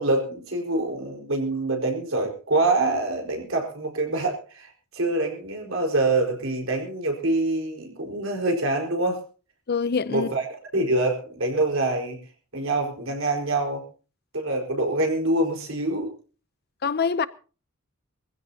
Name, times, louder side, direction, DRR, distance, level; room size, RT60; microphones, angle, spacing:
voice 1, 0.0-9.2 10.1-10.5 10.7-12.2 12.5-13.8 14.3-16.1, right 2 dB, 70° right, 4.8 m, -25 dB
voice 2, 9.7-10.3 16.8-17.3, left 5 dB, 50° left, 0.7 m, -24 dB
22.5 x 15.5 x 2.9 m
head